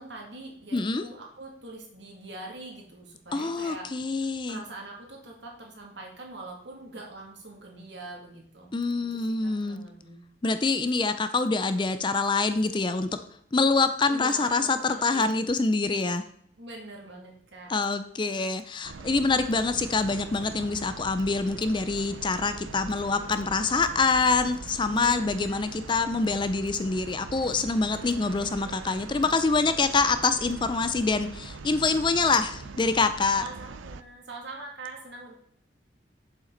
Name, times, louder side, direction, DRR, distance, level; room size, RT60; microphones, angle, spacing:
voice 1, 0.0-3.9 4.5-8.8 9.1-10.2 14.1-15.3 16.6-17.7 24.9-25.8 33.3-35.3, right 2 dB, 65° right, 0 dB, 2.4 m, -43 dB
voice 2, 0.7-1.0 3.3-4.6 8.7-9.8 10.4-13.1 13.5-16.2 17.7-33.4, left 4 dB, 25° left, 11 dB, 0.4 m, -25 dB
sound 1, 18.8-34.0, right 4 dB, 85° right, 0.6 m, -42 dB
7.9 x 7.3 x 3.9 m, 0.68 s
head